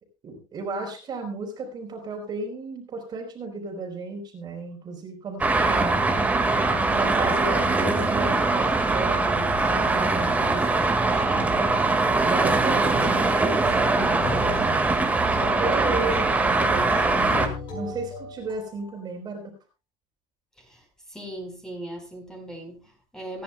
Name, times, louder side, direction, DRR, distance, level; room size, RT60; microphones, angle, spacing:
voice 1, 0.2-6.1 6.8-11.7 12.2-15.1 15.6-19.5, right 3 dB, 30° right, 3.8 m, -34 dB
Traffic noise roadway noise, 5.4-17.5, right 3 dB, 10° right, 1.8 m, -22 dB
sound 1, 14.2-19.1, left 3 dB, 35° left, 5.8 m, -37 dB
voice 2, 20.6-23.4, right 1 dB, 5° left, 4.4 m, -39 dB
26.0 x 10.5 x 2.2 m
cardioid pair, 150°, 14 cm